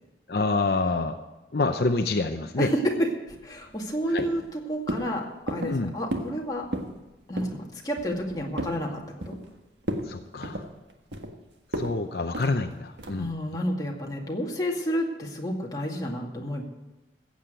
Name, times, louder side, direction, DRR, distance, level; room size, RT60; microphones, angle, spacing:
voice 1, 0.3-1.2 1.5-2.7 4.1-4.3 5.7-5.9 10.1-10.6 11.8-13.3, left 3 dB, 60° left, 6 dB, 0.7 m, -27 dB
voice 2, 2.6-3.1 3.4-6.7 7.3-9.0 9.3-9.4 13.2-16.6, equal, 20° left, -1 dB, 2.1 m, -30 dB
sound 1, 3.3-3.9 4.2-4.5 4.9-5.1 5.5-5.8 6.1-6.4 6.6-7.0 7.4-7.6 8.0-8.8 9.2-9.5 9.8-10.1 10.4-11.3 11.7-11.9 12.3-12.5 13.0-13.3, right 1 dB, 85° right, 1.6 m, -33 dB
15.0 x 8.4 x 7.7 m, 1.1 s
head